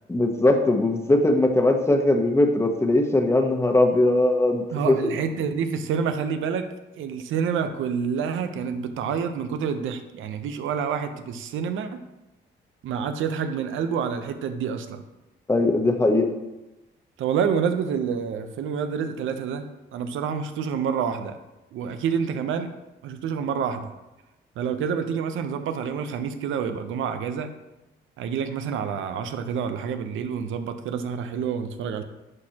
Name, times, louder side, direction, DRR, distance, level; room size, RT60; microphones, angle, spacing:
voice 1, 0.1-5.1 15.5-16.3, left 2 dB, 15° left, 4 dB, 1.0 m, -20 dB
voice 2, 4.7-6.7 6.9-12.0 12.8-15.0 17.2-21.4 21.7-22.7 23.0-23.9 24.6-27.5 28.2-32.0, right 7 dB, 80° right, 8 dB, 0.7 m, -28 dB
11.0 x 4.4 x 2.9 m, 1.0 s
cardioid pair, 90°, 20 cm